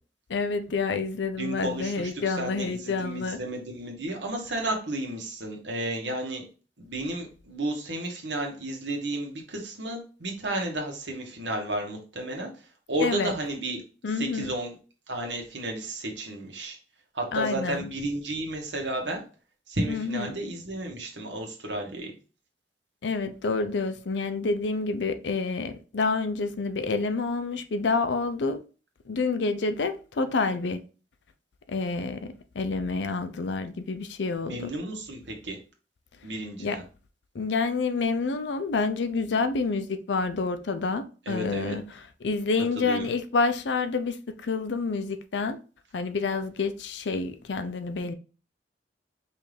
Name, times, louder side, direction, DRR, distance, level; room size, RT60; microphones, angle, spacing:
voice 1, 0.3-3.4 13.0-13.3 14.0-14.5 17.3-17.9 19.9-20.3 23.0-28.6 29.1-30.8 31.7-34.7 36.6-36.8 37.3-41.8 42.2-45.6 45.9-48.2, left 4 dB, 80° left, 0.5 m, -28 dB
voice 2, 1.4-6.4 6.8-13.8 14.2-14.7 15.1-16.8 17.1-19.2 19.7-22.1 34.4-35.6 36.2-36.8 41.3-41.7 42.7-43.1, right 1 dB, 90° right, 1.2 m, -32 dB
5.5 x 2.6 x 3.3 m
head